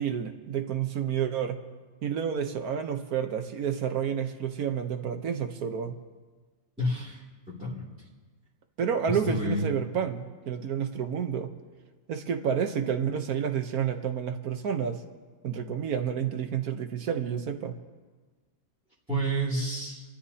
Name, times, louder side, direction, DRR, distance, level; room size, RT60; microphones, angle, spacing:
voice 1, 0.0-1.6 2.0-6.0 8.8-11.5 12.1-15.0 15.4-17.8, right 8 dB, 60° right, 6 dB, 1.3 m, -30 dB
voice 2, 6.8-7.2 7.6-7.9 9.3-9.7 19.1-20.0, right 1 dB, 5° right, -8 dB, 2.7 m, -29 dB
30.0 x 13.0 x 2.8 m, 1.4 s
omnidirectional pair, 2.1 m